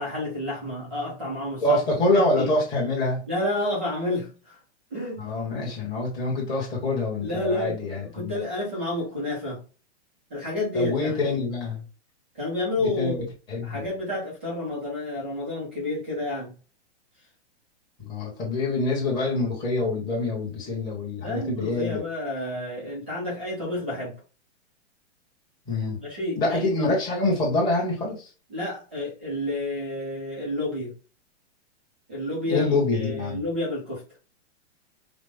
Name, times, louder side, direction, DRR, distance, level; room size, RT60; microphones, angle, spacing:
voice 1, 0.0-1.8 2.1-2.5 3.3-4.6 4.9-5.2 7.2-9.6 10.3-11.2 12.3-13.3 13.6-16.5 21.2-24.2 26.0-26.9 28.5-31.0 32.1-32.7 32.9-34.0, left 1 dB, 10° right, 0.4 m, -30 dB
voice 2, 1.6-3.2 5.2-8.4 10.7-11.8 13.0-13.2 13.5-13.8 18.0-22.0 25.7-26.0 26.4-28.3 32.5-33.4, left 2 dB, 10° left, 1.0 m, -25 dB
5.0 x 2.0 x 3.4 m
hypercardioid pair, 170°, 35 cm